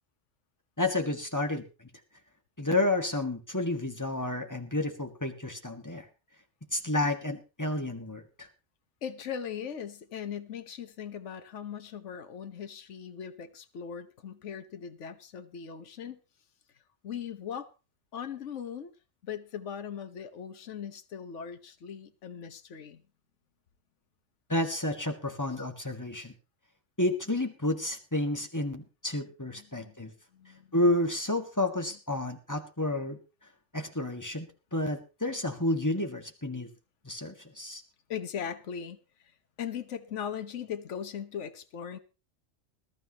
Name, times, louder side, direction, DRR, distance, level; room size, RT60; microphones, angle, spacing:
voice 1, 0.8-1.9 2.6-6.1 6.7-8.5 24.5-26.3 27.0-30.1 30.7-33.2 33.7-36.7 37.0-37.8, left 1 dB, 15° left, 1.7 m, -30 dB
voice 2, 9.0-16.2 17.0-17.7 18.1-18.9 19.2-23.0 29.5-30.7 38.1-39.0 39.6-42.0, left 8 dB, 75° left, 1.3 m, -39 dB
20.5 x 12.5 x 3.0 m
omnidirectional pair, 1.2 m